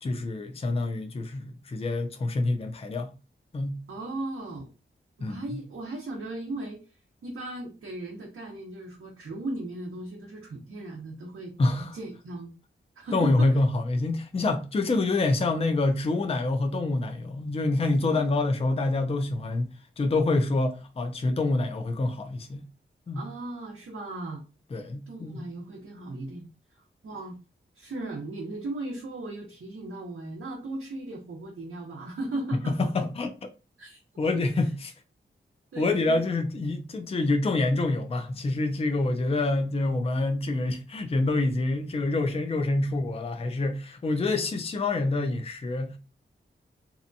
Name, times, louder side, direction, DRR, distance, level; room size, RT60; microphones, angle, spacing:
voice 1, 0.0-3.1 3.5-3.7 5.2-5.6 11.6-12.0 13.1-22.6 23.1-23.2 24.7-25.5 32.5-33.3 34.2-34.9 35.8-46.0, left 2 dB, 30° left, 0.4 m, -26 dB
voice 2, 3.9-4.7 5.2-6.8 7.2-12.5 13.0-13.6 18.1-18.3 23.1-24.4 25.1-27.4 27.7-32.8 33.8-34.0 34.3-34.7 35.7-36.2, right 2 dB, 85° right, 0.7 m, -37 dB
2.7 x 2.2 x 2.6 m
wide cardioid pair, 95°, 21 cm